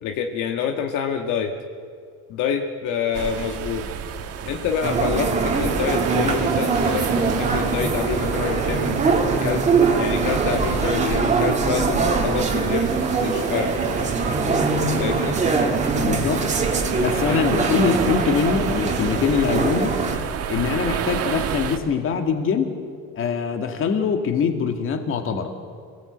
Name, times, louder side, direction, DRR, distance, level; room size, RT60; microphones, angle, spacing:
voice 1, 0.0-1.6 2.3-3.9 4.5-9.0 9.4-9.6 9.9-12.9 13.2-13.8 15.0-15.3 17.1-17.4, left 7 dB, 65° left, 4 dB, 1.8 m, -27 dB
sound 1, 3.1-21.8, right 7 dB, 50° right, 1.7 m, -30 dB
sound 2, 4.8-20.2, right 4 dB, 20° right, 2.2 m, -22 dB
voice 2, 16.0-16.5 17.0-20.0 20.5-22.7 23.1-25.5, left 6 dB, 40° left, 5 dB, 2.3 m, -23 dB
27.0 x 18.0 x 8.2 m, 2.1 s
cardioid pair, 155°, 32 cm